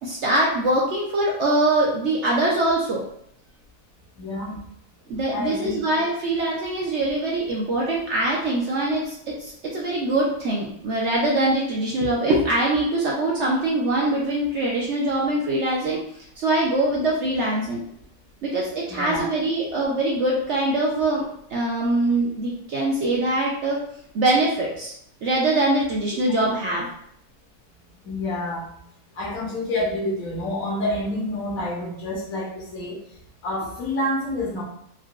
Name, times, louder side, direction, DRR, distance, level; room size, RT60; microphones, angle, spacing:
voice 1, 0.0-3.0 5.1-16.0 16.4-17.8 18.4-21.2 21.5-23.8 24.1-24.9 25.2-26.9, right 1 dB, 65° right, -4 dB, 0.7 m, -23 dB
voice 2, 4.2-4.6 5.3-5.8 18.9-19.3 26.1-26.2 28.0-28.7 29.2-33.0 33.4-34.6, left 1 dB, 70° left, -3 dB, 1.2 m, -28 dB
3.8 x 2.2 x 2.3 m, 0.69 s
omnidirectional pair, 1.6 m